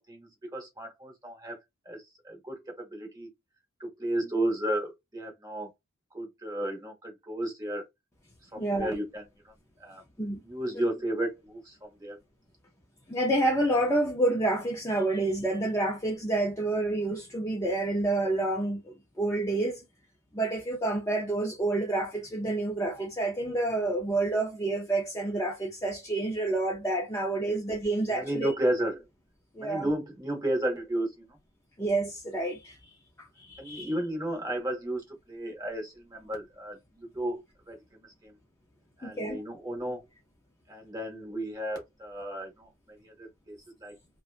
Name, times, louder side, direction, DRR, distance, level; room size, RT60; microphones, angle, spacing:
voice 1, 0.1-1.6 1.8-3.3 3.8-5.7 6.1-7.9 8.5-9.5 9.8-10.0 10.4-12.2 28.1-29.0 29.6-31.4 33.6-38.3 39.0-40.0 40.7-43.9, right 1 dB, 15° right, 0.9 m, -33 dB
voice 2, 8.6-8.9 10.2-10.4 13.1-19.8 20.3-28.5 29.6-29.9 31.8-32.8 33.5-33.9 39.0-39.4, right 2 dB, 15° left, 0.4 m, -28 dB
2.6 x 2.1 x 2.4 m
head